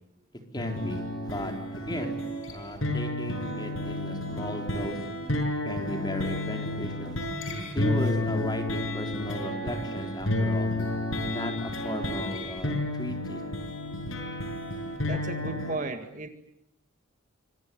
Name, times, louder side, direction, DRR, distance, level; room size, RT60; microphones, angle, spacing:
voice 1, 0.5-2.2 2.5-5.0 5.7-7.2 7.7-10.7 11.2-13.4, left 1 dB, 20° left, 3 dB, 4.3 m, -35 dB
sound 1, 0.6-15.8, left 1 dB, 70° left, 6.3 m, -31 dB
voice 2, 15.0-16.3, right 2 dB, 40° right, 7 dB, 1.9 m, -34 dB
27.0 x 26.0 x 7.3 m, 0.77 s
head